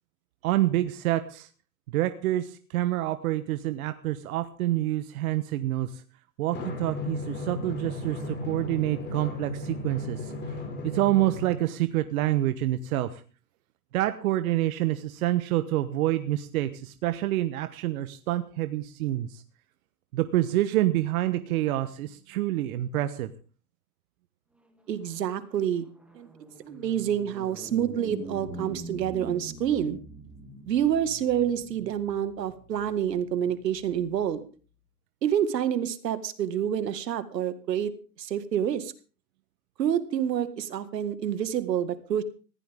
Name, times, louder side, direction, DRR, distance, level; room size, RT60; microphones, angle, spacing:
voice 1, 0.4-1.5 1.9-5.9 6.4-10.3 10.7-13.2 13.9-19.4 20.1-23.3, right 15 dB, 60° right, 11 dB, 1.3 m, -27 dB
Drum, 6.5-11.6, left 2 dB, 20° left, 4.5 m, -35 dB
sound 1, 24.7-34.2, right 2 dB, ahead, 2.4 m, -45 dB
voice 2, 24.9-25.9 26.1-26.3 26.7-30.0 30.7-34.4 35.2-37.9 38.2-38.9 39.8-42.2, right 9 dB, 80° right, 12 dB, 2.1 m, -28 dB
19.5 x 15.5 x 3.7 m, 0.37 s
hypercardioid pair, 130°, 49 cm